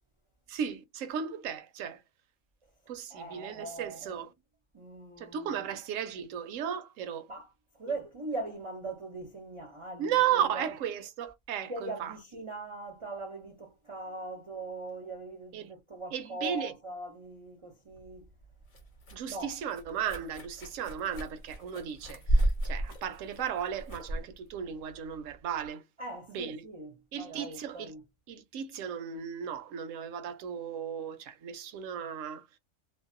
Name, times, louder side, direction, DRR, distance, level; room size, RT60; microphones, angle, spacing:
voice 1, 0.5-2.0 2.9-4.3 5.2-7.3 10.0-12.1 15.5-15.7 16.1-16.7 19.1-25.8 26.3-26.6 27.1-27.9 28.3-32.6, right 9 dB, 75° right, 0.9 m, -35 dB
voice 2, 3.1-4.2 4.7-5.5 7.3-7.5 7.7-10.7 11.7-18.3 19.3-19.6 26.0-28.0, right 2 dB, 40° right, 0.5 m, -41 dB
sound 1, 17.9-25.7, right 1 dB, 45° left, 0.8 m, -34 dB
2.6 x 2.0 x 2.5 m
omnidirectional pair, 1.4 m